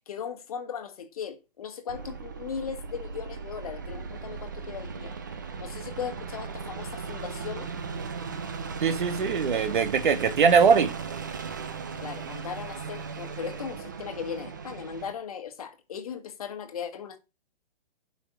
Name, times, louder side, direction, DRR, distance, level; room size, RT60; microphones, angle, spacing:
voice 1, 0.1-5.1 5.6-7.7 12.0-17.2, left 7 dB, 40° left, 1.5 m, -37 dB
sound 1, 1.9-15.1, right 5 dB, 20° right, 0.5 m, -37 dB
voice 2, 8.8-10.9, right 6 dB, 55° right, 1.6 m, -21 dB
8.7 x 5.6 x 6.7 m
hypercardioid pair, 180°, 29 cm